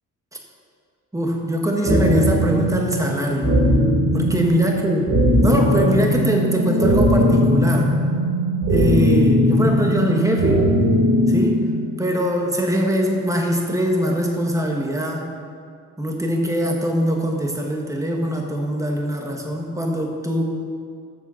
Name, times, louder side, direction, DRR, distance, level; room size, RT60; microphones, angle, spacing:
voice 1, 1.1-3.5 4.1-5.0 5.4-7.9 8.7-10.6 11.3-11.6 12.0-15.2 16.0-20.4, equal, 10° right, 1 dB, 1.3 m, -22 dB
sound 1, 1.9-11.8, equal, 55° right, 2.5 m, -19 dB
13.0 x 7.8 x 5.6 m, 2.2 s
wide cardioid pair, 170°, 33 cm